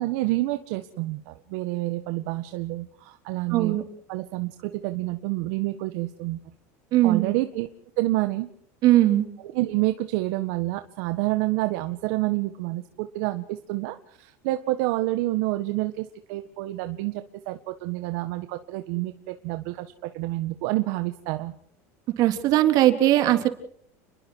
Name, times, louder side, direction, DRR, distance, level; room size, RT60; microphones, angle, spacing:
voice 1, 0.0-3.8 4.1-6.4 7.0-7.7 8.0-8.5 9.5-21.5, right 18 dB, 70° right, 9 dB, 1.6 m, -28 dB
voice 2, 3.5-3.8 6.9-7.3 8.8-9.3 22.2-23.5, right 14 dB, 50° right, 7 dB, 3.6 m, -19 dB
30.0 x 22.0 x 4.8 m, 0.66 s
supercardioid pair, 125°, 8 cm